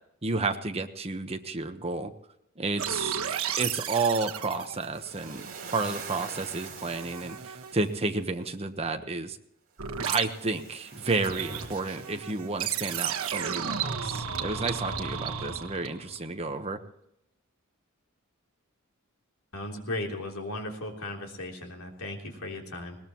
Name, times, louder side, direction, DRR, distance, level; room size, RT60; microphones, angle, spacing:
voice 1, 0.2-2.1 2.6-3.2 3.6-9.4 10.1-16.8, right 3 dB, 30° right, 6 dB, 1.1 m, -31 dB
sound 1, 2.8-6.0 6.4-7.9 9.8-10.3 10.9-16.2, right 7 dB, 80° right, 1.4 m, -34 dB
Waves surf, 4.9-8.1 9.9-13.0, right 6 dB, 45° right, 4.1 m, -45 dB
voice 2, 19.5-23.0, left 1 dB, 75° left, 1 dB, 3.5 m, -36 dB
21.0 x 18.5 x 3.1 m, 0.79 s
head